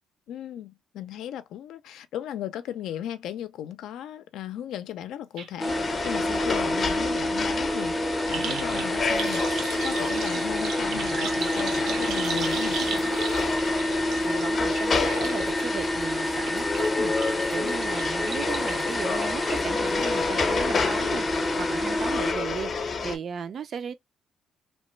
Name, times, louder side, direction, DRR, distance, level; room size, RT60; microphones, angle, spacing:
voice 1, 0.3-12.8 17.6-17.8, left 10 dB, 85° left, 0.4 m, -36 dB
sound 1, 5.4-5.5 5.8-20.4 20.8-21.3 21.5-21.6, right 6 dB, 80° right, 0.9 m, -37 dB
sound 2, 5.6-22.3, left 1 dB, 5° left, 0.5 m, -28 dB
sound 3, 5.7-23.2, left 4 dB, 45° left, 0.6 m, -30 dB
voice 2, 14.2-23.9, right 6 dB, 55° right, 0.4 m, -36 dB
3.0 x 2.1 x 3.1 m
cardioid pair, 90°, 0 cm